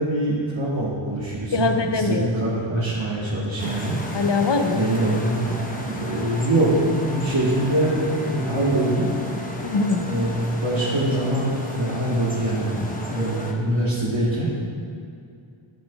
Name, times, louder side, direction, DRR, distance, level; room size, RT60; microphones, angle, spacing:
voice 1, 0.0-4.0 4.7-9.1 10.0-14.5, right 1 dB, 70° right, -8 dB, 1.5 m, -24 dB
voice 2, 1.5-2.3 4.1-4.8 9.6-10.0, left 4 dB, 60° left, 6 dB, 0.7 m, -22 dB
sound 1, 3.6-13.5, equal, 15° left, 0.9 m, -33 dB
12.0 x 8.3 x 2.3 m, 2.4 s
wide cardioid pair, 45°, 48 cm